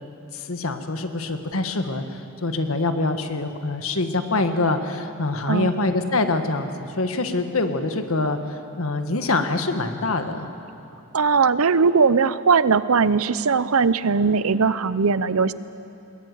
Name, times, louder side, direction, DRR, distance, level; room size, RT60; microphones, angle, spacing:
voice 1, 0.3-10.5, left 2 dB, 80° left, 7 dB, 1.6 m, -25 dB
voice 2, 11.1-15.5, right 5 dB, 90° right, 15 dB, 0.7 m, -19 dB
21.0 x 19.5 x 9.4 m, 2.8 s
head